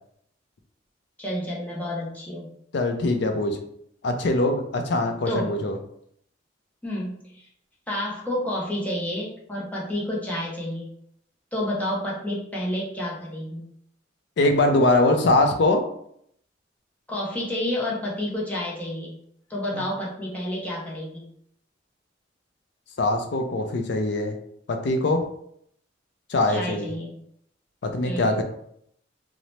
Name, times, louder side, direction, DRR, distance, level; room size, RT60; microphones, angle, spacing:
voice 1, 1.2-2.5 5.3-5.5 6.8-7.5 7.9-10.9 11.5-13.7 17.1-19.2 19.5-21.3 26.5-27.2 28.0-28.4, left 1 dB, 10° left, -5 dB, 0.6 m, -30 dB
voice 2, 2.7-3.6 4.0-5.8 14.4-15.8 19.7-19.8 23.0-24.4 24.7-25.2 26.3-26.9 27.8-28.4, left 2 dB, 65° left, 5 dB, 0.4 m, -22 dB
2.7 x 2.0 x 3.1 m, 0.69 s
head